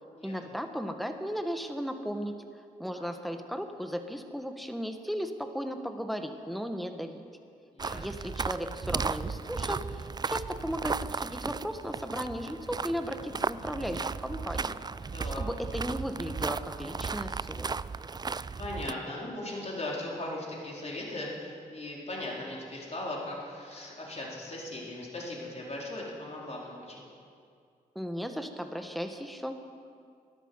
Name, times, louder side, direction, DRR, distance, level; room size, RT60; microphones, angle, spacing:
voice 1, 0.2-2.3 2.8-7.2 7.9-14.8 15.4-17.8 27.9-29.6, equal, ahead, 6 dB, 1.6 m, -36 dB
voice 2, 7.7-8.2 13.3-13.7 15.1-15.4 18.6-27.1, left 1 dB, 40° left, -3 dB, 4.5 m, -38 dB
sound 1, 7.8-18.9, right 4 dB, 25° right, 0.4 m, -35 dB
13.0 x 11.0 x 7.9 m, 2.3 s
supercardioid pair, 45°, 17 cm